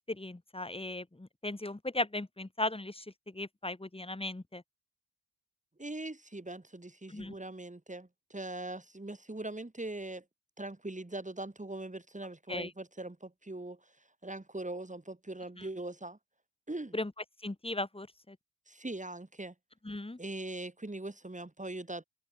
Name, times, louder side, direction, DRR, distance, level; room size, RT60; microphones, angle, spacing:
voice 1, 0.1-4.6 7.1-7.3 12.5-12.7 15.6-15.7 16.9-17.1 17.4-18.4 19.8-20.2, left 2 dB, 10° left, 1.8 m, -37 dB
voice 2, 5.8-10.2 10.6-13.9 14.2-16.2 16.7-17.0 18.7-19.5 20.2-22.0, right 2 dB, 15° right, 4.8 m, -41 dB
open air
cardioid pair, 55°, 47 cm